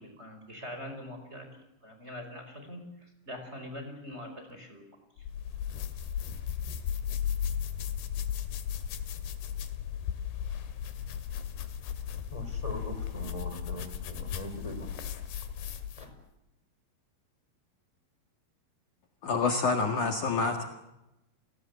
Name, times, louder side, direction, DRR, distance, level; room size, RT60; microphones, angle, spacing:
voice 1, 0.0-1.5 1.8-4.8, left 1 dB, 15° right, 5.0 m, -43 dB
sound 1, 5.2-16.1, left 9 dB, 85° left, 3.9 m, -35 dB
voice 2, 12.3-14.9 15.9-16.1, equal, 10° left, 4.6 m, -41 dB
voice 3, 19.2-20.6, left 4 dB, 55° left, 3.1 m, -27 dB
30.0 x 20.0 x 8.2 m
omnidirectional pair, 4.6 m